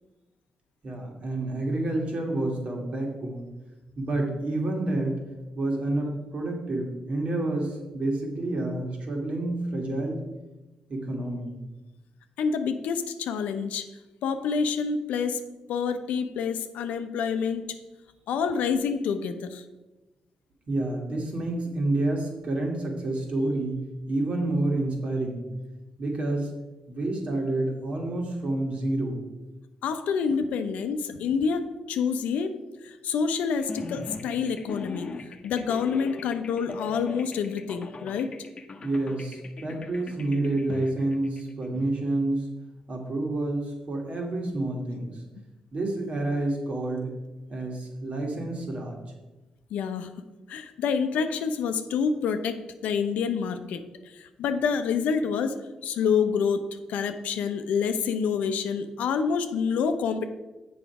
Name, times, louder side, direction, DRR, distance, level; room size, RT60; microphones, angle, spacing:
voice 1, 0.8-3.5 4.0-5.2 5.6-10.2 10.9-11.5 20.7-25.5 26.0-26.5 26.9-29.2 38.8-42.5 42.9-45.1 45.7-47.2 47.5-48.9, right 2 dB, 55° right, 1 dB, 1.9 m, -29 dB
voice 2, 12.4-13.9 14.2-15.4 15.7-17.7 18.3-19.6 29.8-32.6 32.8-35.1 35.4-38.3 49.7-50.1 50.5-53.8 54.1-55.6 55.8-60.2, left 6 dB, 85° left, 9 dB, 0.6 m, -27 dB
sound 1, 33.6-41.9, left 3 dB, 45° left, 0.8 m, -40 dB
7.1 x 5.1 x 4.8 m, 1.1 s
cardioid pair, 70°, 2 cm